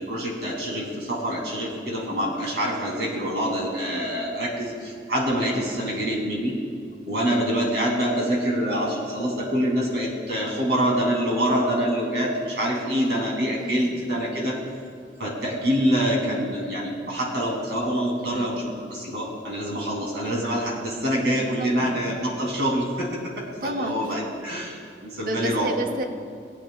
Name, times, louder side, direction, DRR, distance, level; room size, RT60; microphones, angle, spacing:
voice 1, 0.0-6.6 7.1-14.6 15.2-23.1 23.4-25.7, equal, 85° right, -2 dB, 2.6 m, -26 dB
voice 2, 5.3-5.6 7.1-7.4 12.6-14.0 18.2-18.5 21.6-22.0 23.6-24.2 25.2-26.0, right 1 dB, 55° right, 4 dB, 0.8 m, -33 dB
22.0 x 8.6 x 2.3 m, 2.2 s
head